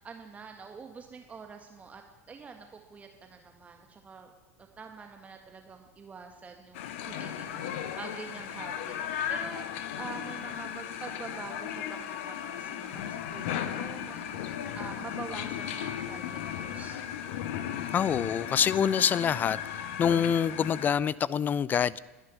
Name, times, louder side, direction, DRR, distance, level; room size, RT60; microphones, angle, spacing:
voice 1, 0.0-4.3 4.6-9.7 9.9-14.4 14.7-17.0, right 5 dB, 20° right, 4 dB, 1.6 m, -46 dB
sound 1, 6.7-20.9, left 9 dB, 55° left, 1.2 m, -36 dB
voice 2, 17.9-19.6 20.0-22.0, left 8 dB, 25° left, 23 dB, 0.4 m, -26 dB
21.5 x 11.0 x 5.8 m, 1.1 s
figure-of-eight pair, 80°, 8 cm